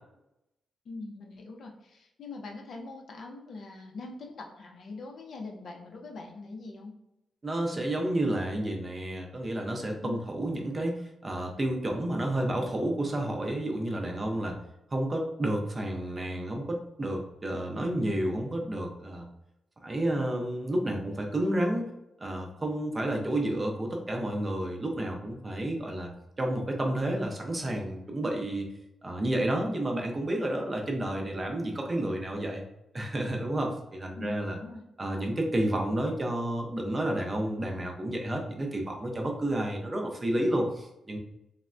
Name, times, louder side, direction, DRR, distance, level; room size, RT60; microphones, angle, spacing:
voice 1, 0.9-6.9 10.0-10.3 34.1-34.8, left 3 dB, 55° left, 2 dB, 0.4 m, -42 dB
voice 2, 7.4-14.6 14.9-19.3 19.8-21.9 22.2-26.1 26.4-28.7 29.0-32.6 32.9-34.6 35.0-41.2, right 1 dB, 20° right, 1 dB, 0.4 m, -30 dB
3.3 x 2.1 x 2.4 m, 0.87 s
wide cardioid pair, 150°, 0 cm